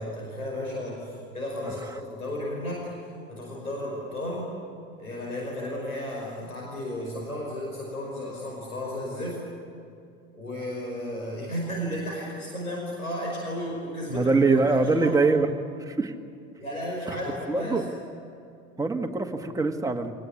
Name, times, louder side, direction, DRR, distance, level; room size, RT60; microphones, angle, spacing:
voice 1, 0.0-2.9 3.3-4.5 5.0-9.4 10.3-15.2 16.6-17.8, left 1 dB, 85° left, -3 dB, 5.4 m, -33 dB
voice 2, 1.6-2.0 14.1-15.5 15.8-16.1 17.1-17.2 17.5-17.8 18.8-20.1, right 3 dB, 10° right, 3 dB, 1.9 m, -24 dB
25.5 x 19.0 x 9.8 m, 2.4 s
figure-of-eight pair, 75°, 42 cm